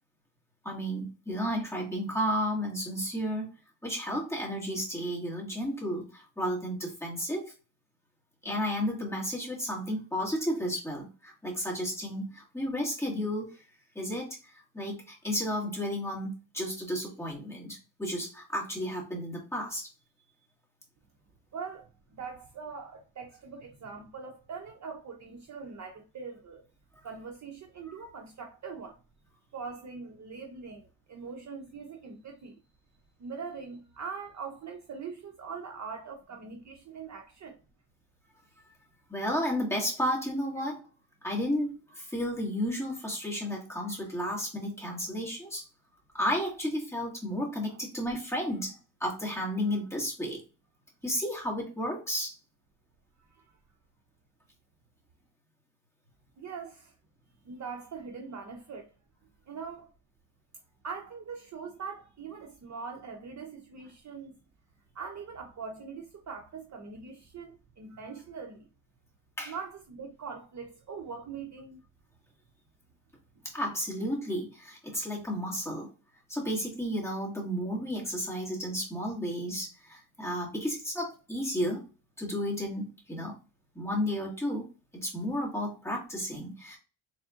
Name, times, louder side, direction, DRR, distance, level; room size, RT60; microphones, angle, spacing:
voice 1, 0.6-3.5 3.8-7.5 8.4-13.6 14.0-14.3 14.7-19.9 39.1-40.9 41.2-45.6 46.1-48.8 49.0-50.4 51.0-52.3 69.4-69.5 73.5-75.9 76.3-81.8 82.2-83.4 83.8-84.7 84.9-86.8, equal, 5° left, 1.9 m, -32 dB
voice 2, 21.5-26.6 27.0-29.0 29.5-32.6 33.2-37.6 47.7-47.8 53.2-53.6 56.4-56.9 57.4-58.9 59.5-59.9 60.8-64.4 64.9-68.6 69.5-71.8, right 5 dB, 40° right, 0.7 m, -42 dB
4.2 x 3.5 x 2.5 m
cardioid pair, 120°, 44 cm